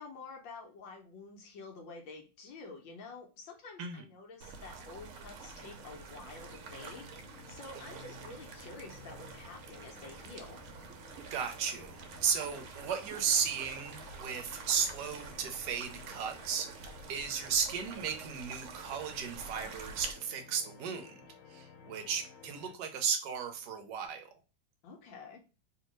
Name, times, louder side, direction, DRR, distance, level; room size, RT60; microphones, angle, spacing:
voice 1, 0.0-7.1 7.5-10.6 24.8-25.4, left 4 dB, 70° left, 2 dB, 1.4 m, -49 dB
sound 1, 4.4-20.1, right 4 dB, 85° right, 1.5 m, -48 dB
sound 2, 4.9-22.8, left 6 dB, 85° left, 1.5 m, -56 dB
voice 2, 11.3-21.2 21.5-24.3, right 7 dB, 65° right, 6 dB, 1.1 m, -35 dB
3.5 x 2.8 x 3.0 m, 0.32 s
omnidirectional pair, 2.3 m